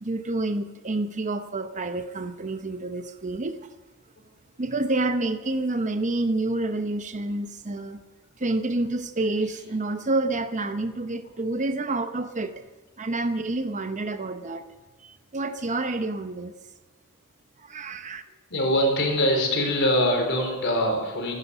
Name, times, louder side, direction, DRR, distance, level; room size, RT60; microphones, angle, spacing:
voice 1, 0.0-3.6 4.6-8.0 8.4-12.6 13.0-14.7 15.0-16.5 17.6-18.2, right 2 dB, 35° right, 0.7 m, -28 dB
voice 2, 18.5-21.3, equal, 55° left, 4.4 m, -23 dB
16.0 x 12.5 x 7.0 m
head